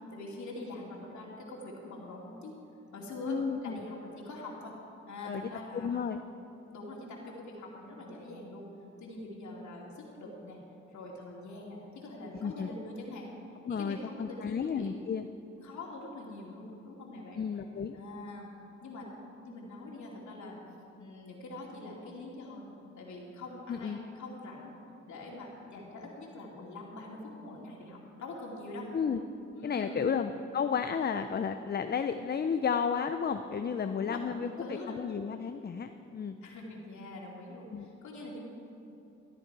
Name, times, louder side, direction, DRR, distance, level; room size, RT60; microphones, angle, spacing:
voice 1, 0.1-2.5 2.9-4.8 5.1-6.1 6.7-8.7 9.0-10.6 10.9-13.3 13.7-14.9 15.6-17.4 17.9-18.5 18.8-19.1 19.4-20.6 21.0-24.7 25.1-28.9 29.5-30.1 33.8-35.0 36.4-38.4, left 2 dB, 70° left, -3 dB, 2.6 m, -44 dB
voice 2, 3.3-3.8 5.2-5.5 5.7-6.2 12.4-12.7 13.7-15.3 17.4-18.0 23.7-24.0 28.9-29.2 29.6-34.5 34.9-36.4 37.7-37.9, left 6 dB, 35° left, 8 dB, 0.6 m, -32 dB
13.5 x 12.0 x 4.7 m, 2.8 s
cardioid pair, 65°, 30 cm